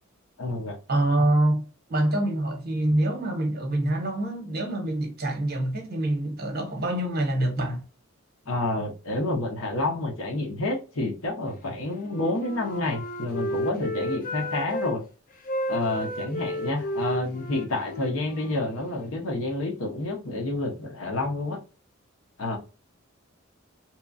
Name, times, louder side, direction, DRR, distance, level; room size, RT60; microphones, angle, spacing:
voice 1, 0.4-0.8 8.5-15.0 15.7-21.6 22.4-22.6, left 2 dB, 80° left, 0.9 m, -29 dB
voice 2, 0.9-1.6 1.9-7.8, right 1 dB, 50° right, 1.0 m, -25 dB
Wind instrument woodwind instrument, 12.0-15.0 15.4-19.3, equal, 40° left, 0.6 m, -33 dB
2.9 x 2.3 x 2.5 m
head